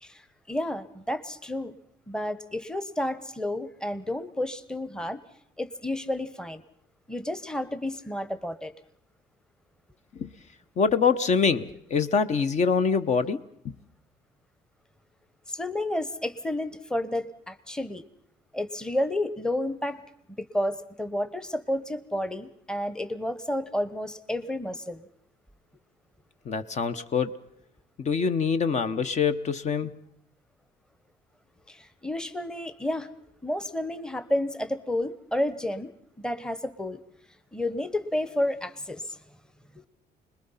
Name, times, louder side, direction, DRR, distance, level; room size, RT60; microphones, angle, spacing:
voice 1, 0.0-1.7 2.1-5.2 5.6-6.6 7.1-8.7 15.5-18.0 18.5-20.0 20.4-25.0 31.7-33.1 33.4-35.9 36.2-37.0 37.5-39.2 39.7-39.8, left 1 dB, 5° left, 13 dB, 1.0 m, -31 dB
voice 2, 10.8-13.7 26.5-27.3 28.0-30.0, left 5 dB, 45° left, 10 dB, 0.9 m, -25 dB
26.0 x 21.0 x 5.7 m, 0.70 s
cardioid pair, 110°, 17 cm